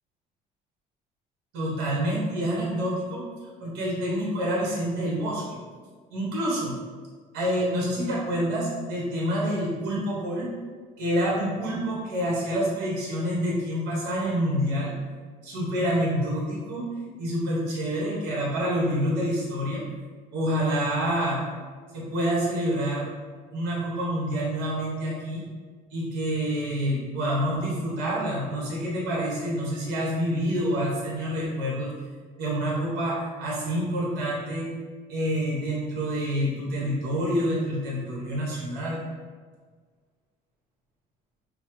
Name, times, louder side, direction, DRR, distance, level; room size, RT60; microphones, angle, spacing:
voice 1, 1.5-3.2 3.6-5.6 6.1-6.8 7.3-10.5 11.0-15.0 15.4-16.9 17.2-19.8 20.3-21.4 21.9-23.1 23.5-25.4 25.9-31.9 32.4-34.7 35.1-39.0, equal, 90° right, -5 dB, 1.2 m, -27 dB
5.4 x 2.0 x 3.2 m, 1.5 s
cardioid pair, 110°, 17 cm